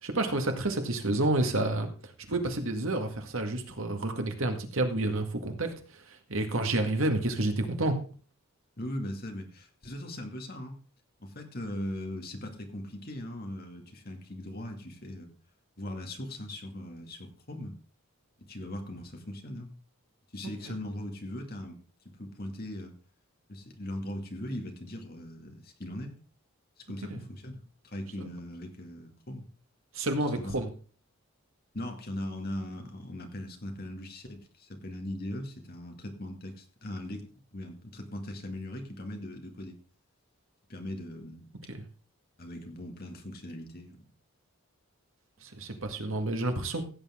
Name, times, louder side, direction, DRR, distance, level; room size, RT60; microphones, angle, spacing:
voice 1, 0.0-8.0 20.7-20.8 27.1-27.2 28.2-28.3 29.9-30.7 41.7-41.9 45.4-46.8, right 2 dB, 65° right, 5 dB, 2.0 m, -30 dB
voice 2, 8.8-10.8 11.2-15.3 15.8-17.8 18.4-19.7 20.3-21.8 22.2-22.9 23.5-26.1 26.8-27.6 27.8-29.5 30.3-30.6 31.7-39.8 40.7-41.5 42.4-44.1, left 1 dB, 45° left, 3 dB, 2.3 m, -39 dB
16.0 x 8.5 x 3.7 m, 0.38 s
head